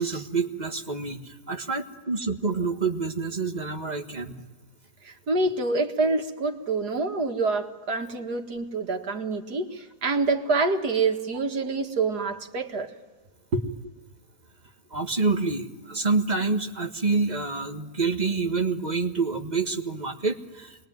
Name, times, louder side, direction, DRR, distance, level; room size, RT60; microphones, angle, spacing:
voice 1, 0.0-4.4 14.9-20.9, right 4 dB, 25° right, 4 dB, 1.7 m, -27 dB
voice 2, 5.0-12.9 13.5-13.6, right 3 dB, 80° right, 4 dB, 2.4 m, -26 dB
28.5 x 22.0 x 9.4 m, 1.3 s
omnidirectional pair, 1.7 m